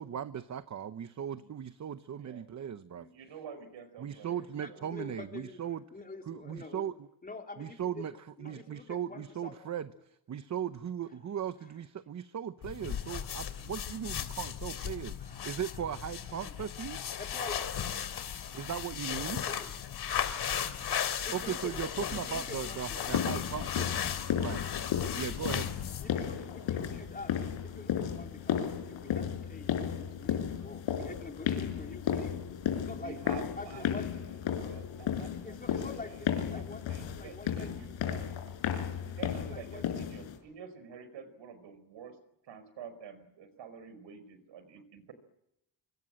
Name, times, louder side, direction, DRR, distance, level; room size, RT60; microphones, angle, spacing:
voice 1, 0.0-3.1 4.0-5.8 6.3-7.1 7.6-9.9 10.3-17.0 18.5-19.4 21.3-24.6 25.1-25.7 28.7-28.8, right 9 dB, 40° right, 12 dB, 0.9 m, -38 dB
voice 2, 2.1-2.4 2.9-4.9 32.9-36.1 36.5-36.6 36.9-38.2 39.0-42.2 42.4-45.1, right 6 dB, 75° right, 12 dB, 4.8 m, -49 dB
voice 3, 4.6-5.6 5.9-6.9 7.2-9.6 15.2-15.8 16.4-16.7 17.2-18.5 19.2-19.8 21.2-21.8 22.3-23.5 25.1-25.2 26.0-27.5 27.7-32.4 32.9-34.1 35.4-37.8 39.4-39.8, left 3 dB, 20° left, 2 dB, 4.0 m, -46 dB
sound 1, 12.6-26.2, left 9 dB, 60° left, 3.3 m, -36 dB
sound 2, 23.1-40.4, left 8 dB, 90° left, 5.4 m, -34 dB
25.5 x 24.5 x 7.7 m, 0.82 s
cardioid pair, 140°, 44 cm